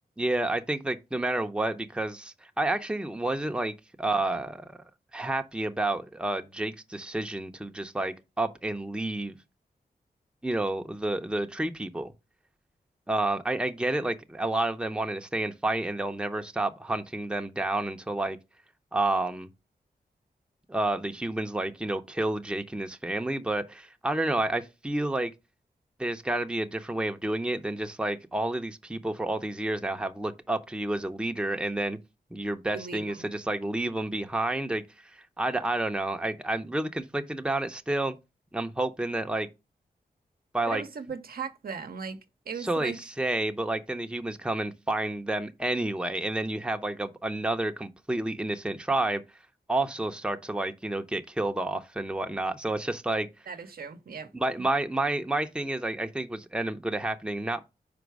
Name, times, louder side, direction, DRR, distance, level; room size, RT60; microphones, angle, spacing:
voice 1, 0.2-4.8 5.1-9.4 10.4-12.1 13.1-18.4 18.9-19.5 20.7-25.3 26.0-32.0 32.3-34.8 35.1-38.2 38.5-39.5 40.5-40.8 42.6-49.2 49.7-53.3 54.3-57.7, right 2 dB, 5° right, 0.7 m, -30 dB
voice 2, 32.7-33.3 40.6-43.0 53.5-54.3 54.6-54.7, right 6 dB, 70° right, 0.8 m, -38 dB
5.2 x 4.6 x 4.7 m
cardioid pair, 65°, 16 cm